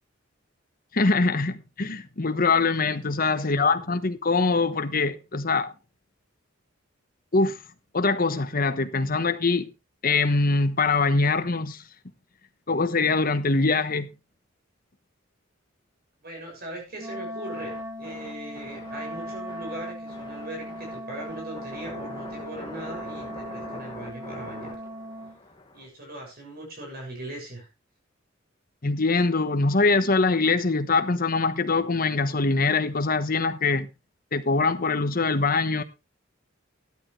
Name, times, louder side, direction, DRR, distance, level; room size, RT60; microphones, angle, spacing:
voice 1, 0.9-5.7 7.3-7.6 7.9-9.7 10.0-11.8 12.7-14.1 28.8-33.9 34.3-35.8, left 3 dB, 45° left, 1.2 m, -23 dB
voice 2, 3.3-3.8 16.2-17.7 18.0-24.8 25.7-27.7, right 1 dB, 50° right, 6.6 m, -39 dB
Wind instrument woodwind instrument, 16.9-25.4, equal, 15° right, 1.5 m, -38 dB
sound 1, 17.5-25.9, left 2 dB, 25° left, 2.0 m, -44 dB
13.0 x 11.5 x 3.3 m
head